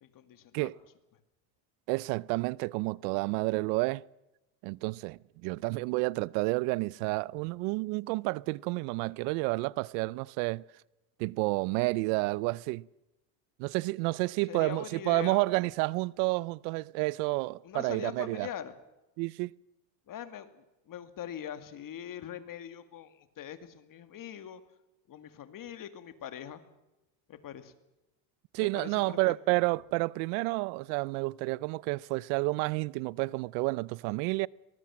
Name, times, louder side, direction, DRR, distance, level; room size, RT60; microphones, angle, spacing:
voice 1, 0.0-0.7 14.5-15.4 17.6-18.7 20.1-24.6 25.1-26.6 27.3-27.7 28.6-29.6, left 10 dB, 40° left, 2.3 m, -42 dB
voice 2, 1.9-4.0 4.6-10.6 11.2-12.9 13.6-18.5 19.2-19.5 28.5-34.5, right 24 dB, 85° right, 0.7 m, -30 dB
23.0 x 20.0 x 7.5 m
cardioid pair, 130°, 48 cm